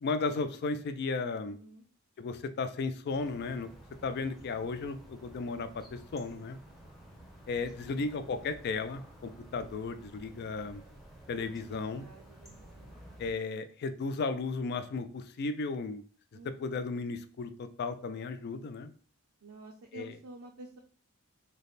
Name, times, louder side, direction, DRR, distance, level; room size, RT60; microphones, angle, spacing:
voice 1, 0.0-1.6 2.2-3.7 4.0-6.6 7.5-10.8 11.3-12.1 13.2-16.0 16.4-18.9 19.9-20.1, left 4 dB, 45° left, 11 dB, 0.3 m, -35 dB
voice 2, 1.2-1.8 7.8-8.4 11.5-13.0 16.3-16.9 19.4-20.8, right 2 dB, 65° right, 2 dB, 0.5 m, -51 dB
sound 1, 3.1-13.3, right 1 dB, ahead, 0.6 m, -53 dB
3.3 x 2.1 x 4.0 m, 0.43 s
head